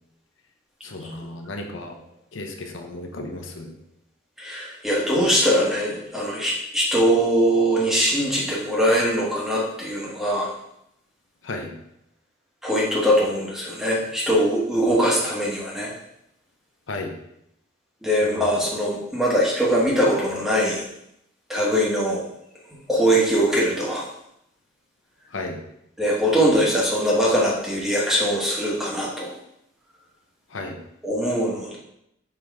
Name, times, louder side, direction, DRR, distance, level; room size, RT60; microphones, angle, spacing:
voice 1, 0.8-1.9 2.3-3.8 11.4-11.7 16.9-17.1 18.2-18.4 25.3-25.6 30.5-30.8, left 2 dB, 75° left, 3 dB, 0.8 m, -34 dB
voice 2, 4.4-10.5 12.6-15.9 18.0-20.9 21.5-22.2 22.9-24.1 26.0-29.3 31.0-31.8, equal, ahead, -5 dB, 1.3 m, -22 dB
5.7 x 4.8 x 3.6 m, 0.79 s
head